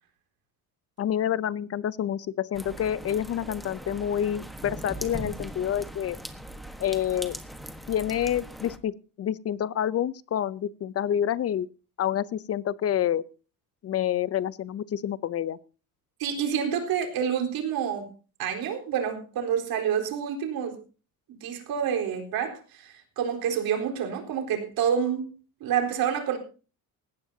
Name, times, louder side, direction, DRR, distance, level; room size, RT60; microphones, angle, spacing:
voice 1, 1.0-6.2 6.8-7.4 7.9-11.7 12.0-13.2 13.8-15.6, left 10 dB, 45° left, 18 dB, 0.6 m, -28 dB
sound 1, 2.5-8.8, right 1 dB, ahead, 1.3 m, -40 dB
voice 2, 16.2-18.1 18.4-20.8 21.4-25.3 25.6-26.4, right 8 dB, 85° right, 3 dB, 4.3 m, -28 dB
19.5 x 16.5 x 2.8 m, 0.35 s
cardioid pair, 160°, 35 cm